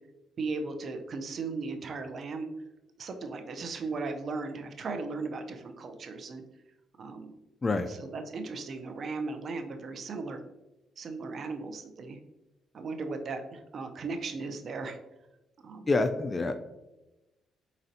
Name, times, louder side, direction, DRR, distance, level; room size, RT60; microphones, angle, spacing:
voice 1, 0.4-2.5 3.0-6.4 7.0-7.3 7.9-10.4 11.0-12.2 12.7-15.0 15.6-15.9, right 3 dB, 50° right, 6 dB, 0.5 m, -37 dB
voice 2, 15.9-16.6, left 3 dB, 25° left, 7 dB, 0.3 m, -27 dB
4.2 x 4.0 x 2.7 m, 0.99 s
cardioid pair, 90°, 0 cm